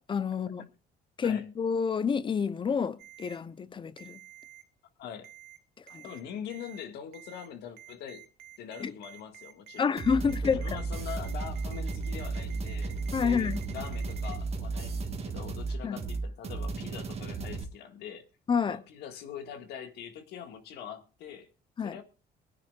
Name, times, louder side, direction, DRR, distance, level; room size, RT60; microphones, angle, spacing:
voice 1, 0.1-0.6 1.2-4.2 5.9-6.0 8.8-8.9 9.8-10.7 13.1-13.6 15.8-16.0 18.5-18.8 21.8-21.9, left 6 dB, 30° left, 0.7 m, -28 dB
Ringtone, 3.0-3.4 4.0-4.6 5.2-5.6 5.9-6.2 6.5-6.8 7.1-7.5 7.8-14.4, right 12 dB, 90° right, 1.2 m, -50 dB
voice 2, 5.0-5.3 6.0-8.3 8.6-9.9 10.3-18.3 18.6-21.5 21.8-22.0, left 8 dB, 80° left, 1.8 m, -43 dB
sound 1, 10.0-17.6, right 3 dB, 40° right, 1.5 m, -34 dB
23.0 x 9.7 x 2.4 m
cardioid pair, 110°, 17 cm